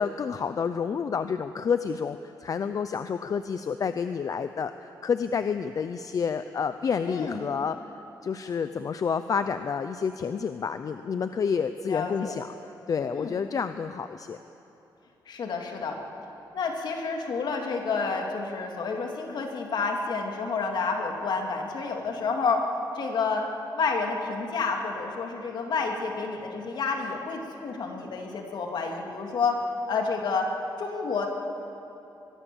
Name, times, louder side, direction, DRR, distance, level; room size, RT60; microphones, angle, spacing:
voice 1, 0.0-7.8 8.2-12.5 12.9-14.4, left 6 dB, 45° left, 10 dB, 0.6 m, -29 dB
voice 2, 7.0-7.4 11.9-12.3 13.1-13.3 15.3-16.0 16.5-29.6 29.9-30.5 30.8-31.3, left 4 dB, 65° left, 2 dB, 2.8 m, -29 dB
23.0 x 21.5 x 7.2 m, 2.9 s
wide cardioid pair, 145°, 8 cm